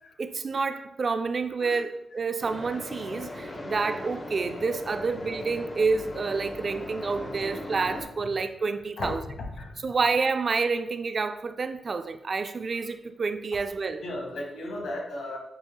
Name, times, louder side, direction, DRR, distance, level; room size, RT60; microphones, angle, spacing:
voice 1, 0.2-9.2 9.8-14.0, right 4 dB, 55° right, 0.4 m, -28 dB
sound 1, 2.4-8.0, left 1 dB, 40° left, 0.9 m, -38 dB
voice 2, 14.0-15.4, left 1 dB, 90° left, 1.0 m, -35 dB
7.6 x 2.9 x 2.2 m
cardioid pair, 60°, 0 cm